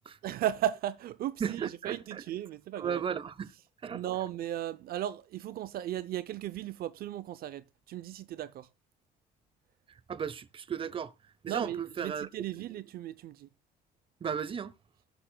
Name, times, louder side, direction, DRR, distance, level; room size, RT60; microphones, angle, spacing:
voice 1, 0.2-3.0 3.8-8.7 11.5-13.5, right 12 dB, 65° right, 0.6 m, -36 dB
voice 2, 1.4-2.2 2.8-3.5 3.8-4.0 10.1-11.1 11.4-12.3 14.2-14.7, right 7 dB, 30° right, 0.8 m, -35 dB
19.5 x 7.0 x 2.3 m
cardioid pair, 110°, 17 cm